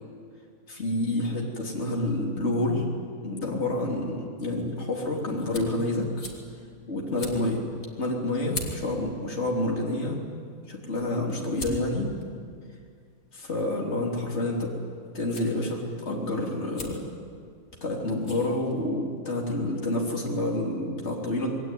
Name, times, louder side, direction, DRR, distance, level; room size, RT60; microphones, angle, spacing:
voice 1, 0.7-2.9 3.2-6.1 6.9-7.6 8.0-10.2 10.7-12.1 13.3-14.7 15.1-17.0 17.8-21.5, left 1 dB, 45° left, -1 dB, 3.8 m, -28 dB
sound 1, 4.4-19.2, left 2 dB, 65° left, 3.5 m, -45 dB
27.5 x 21.0 x 9.4 m, 2.1 s
omnidirectional pair, 1.6 m